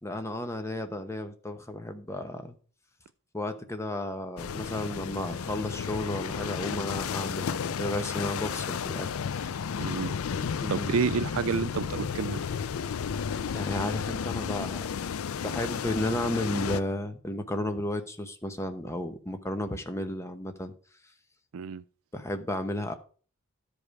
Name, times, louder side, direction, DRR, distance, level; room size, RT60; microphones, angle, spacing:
voice 1, 0.0-2.6 3.3-9.1 9.4-9.5 10.6-10.9 13.5-14.9 15.4-20.7 22.1-22.9, left 1 dB, 15° left, 1.0 m, -33 dB
sound 1, 4.4-16.8, left 7 dB, 80° left, 0.4 m, -33 dB
voice 2, 9.8-10.2 10.7-12.4 21.5-21.8, right 6 dB, 75° right, 0.4 m, -29 dB
12.5 x 5.3 x 4.8 m
head